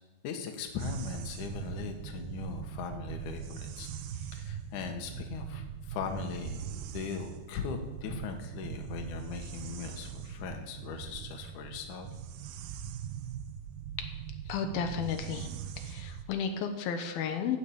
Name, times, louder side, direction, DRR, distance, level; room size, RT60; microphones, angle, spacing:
voice 1, 0.2-3.9 4.1-6.7 6.9-12.1, left 5 dB, 65° left, 4 dB, 2.6 m, -39 dB
sound 1, 0.8-16.2, right 8 dB, 80° right, 2.3 m, -41 dB
voice 2, 14.5-15.5 15.8-17.6, left 7 dB, 85° left, 6 dB, 2.8 m, -33 dB
13.5 x 7.1 x 8.6 m, 1.1 s
omnidirectional pair, 4.2 m